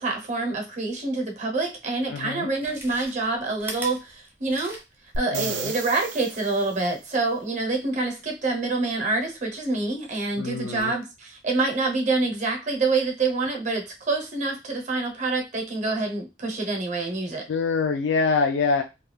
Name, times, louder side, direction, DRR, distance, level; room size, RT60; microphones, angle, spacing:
voice 1, 0.0-4.8 5.2-17.5, right 3 dB, 40° right, 2 dB, 0.8 m, -26 dB
Chewing mastication, 1.7-1.8 2.5-5.1 5.5-5.6, right 1 dB, 10° right, 0.5 m, -39 dB
voice 2, 2.1-2.5 5.3-5.7 10.4-10.9 17.5-18.8, left 4 dB, 70° left, 4 dB, 0.4 m, -25 dB
sound 1, 5.1-7.0 10.8-10.9, right 4 dB, 75° right, 0.5 m, -34 dB
2.3 x 2.3 x 3.2 m, 0.26 s
head